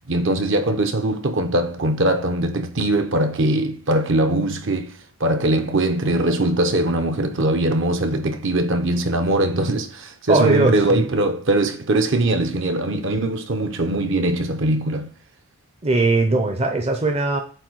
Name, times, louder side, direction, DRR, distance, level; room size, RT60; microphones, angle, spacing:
voice 1, 0.1-15.1, right 1 dB, 55° right, 0.8 m, -21 dB
voice 2, 10.3-11.1 15.8-17.4, right 2 dB, 25° right, 0.6 m, -19 dB
7.6 x 2.7 x 4.6 m
head